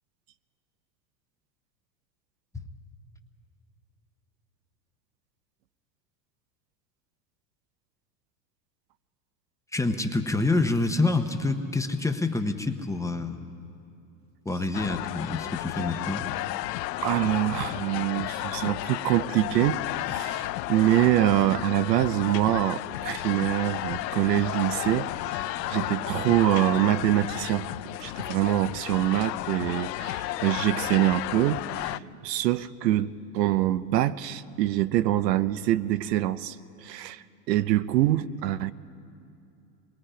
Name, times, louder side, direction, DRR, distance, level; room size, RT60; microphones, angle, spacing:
voice 1, 9.7-13.4 14.4-16.3, left 2 dB, 5° left, 6 dB, 0.8 m, -27 dB
sound 1, 14.7-32.0, left 16 dB, 90° left, 0.6 m, -33 dB
voice 2, 17.0-27.7 28.0-32.0 32.2-36.6 36.8-38.7, right 14 dB, 80° right, 14 dB, 0.8 m, -25 dB
27.0 x 21.0 x 5.0 m, 2.6 s
supercardioid pair, 120°, 48 cm